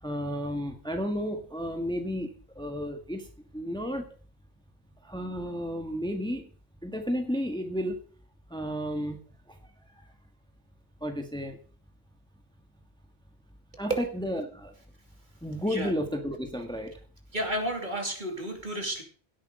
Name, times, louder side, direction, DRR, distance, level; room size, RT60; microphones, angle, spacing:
voice 1, 0.0-3.3 3.5-4.1 5.0-6.5 6.8-8.0 8.5-9.2 9.5-9.6 9.9-10.1 11.0-11.6 13.8-14.7 15.4-16.9, equal, 5° left, 5 dB, 1.6 m, -32 dB
voice 2, 17.3-19.0, right 1 dB, 45° right, 4 dB, 2.9 m, -31 dB
17.0 x 8.7 x 5.0 m, 0.41 s
omnidirectional pair, 1.1 m